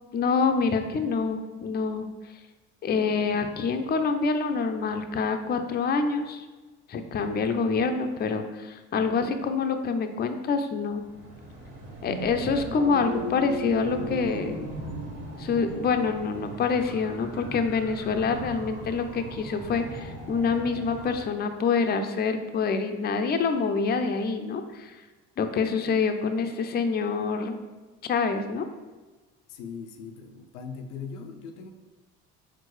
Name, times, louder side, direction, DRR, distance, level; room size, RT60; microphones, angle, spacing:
voice 1, 0.1-2.1 2.8-6.5 6.9-11.0 12.0-14.6 15.4-24.9 25.4-27.6 28.1-28.6, left 5 dB, 30° left, 7 dB, 0.5 m, -26 dB
sound 1, 10.9-21.3, right 1 dB, 35° right, 1.4 m, -41 dB
sound 2, 11.9-16.5, right 1 dB, 65° right, 0.9 m, -36 dB
voice 2, 29.5-31.7, left 5 dB, 85° left, 5 dB, 0.5 m, -40 dB
4.6 x 3.7 x 3.1 m, 1.3 s
hypercardioid pair, 70°, 35 cm